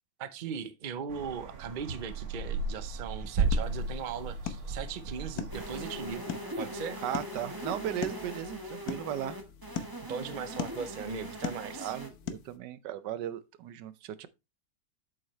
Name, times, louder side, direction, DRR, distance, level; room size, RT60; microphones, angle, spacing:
voice 1, 0.2-7.0 10.1-11.9, right 6 dB, 40° right, 0.7 m, -38 dB
sound 1, 1.1-6.1, right 3 dB, 60° right, 1.7 m, -34 dB
sound 2, 3.4-12.6, left 8 dB, 65° left, 1.4 m, -42 dB
sound 3, 5.5-12.1, equal, 15° right, 1.3 m, -41 dB
voice 2, 7.0-9.4 11.8-14.3, right 11 dB, 85° right, 1.3 m, -36 dB
8.0 x 7.7 x 3.2 m
omnidirectional pair, 1.8 m